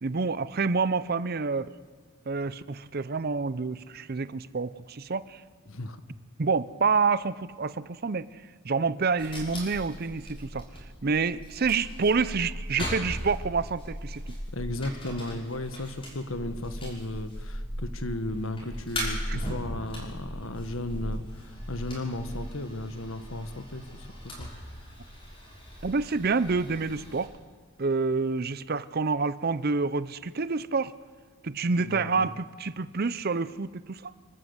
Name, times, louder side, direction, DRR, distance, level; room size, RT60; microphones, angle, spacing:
voice 1, 0.0-1.7 2.3-5.4 6.4-10.7 11.0-14.4 19.3-19.4 25.8-27.3 27.8-30.9 31.4-34.1, right 4 dB, 45° right, 16 dB, 0.6 m, -28 dB
voice 2, 5.7-6.0 14.5-24.5 31.8-32.3, left 1 dB, 65° left, 9 dB, 1.5 m, -35 dB
sound 1, 9.2-27.3, equal, 25° left, 5.9 m, -38 dB
28.0 x 12.5 x 8.1 m, 1.5 s
head